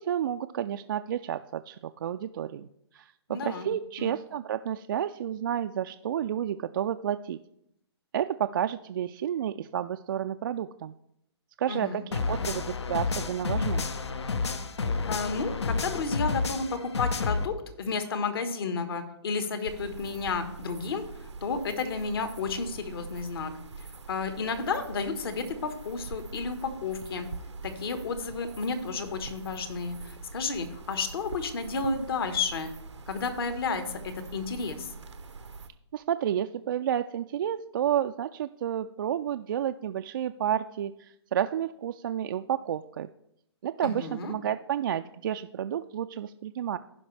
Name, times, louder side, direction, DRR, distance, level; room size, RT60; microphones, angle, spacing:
voice 1, 0.0-2.7 2.9-7.4 8.1-10.9 11.6-13.9 35.9-43.1 43.6-46.8, right 10 dB, 50° right, 7 dB, 0.4 m, -31 dB
voice 2, 3.3-3.7 4.0-4.1 11.7-12.0 12.4-12.5 15.1-23.5 23.8-27.3 27.6-32.7 33.1-34.9 43.8-44.3, left 4 dB, 55° left, 8 dB, 1.5 m, -32 dB
sound 1, 12.1-17.5, left 4 dB, 75° left, 0.9 m, -30 dB
sound 2, 19.6-35.7, right 4 dB, 90° right, 0.8 m, -44 dB
15.5 x 5.3 x 3.3 m, 0.77 s
hypercardioid pair, 140°, 14 cm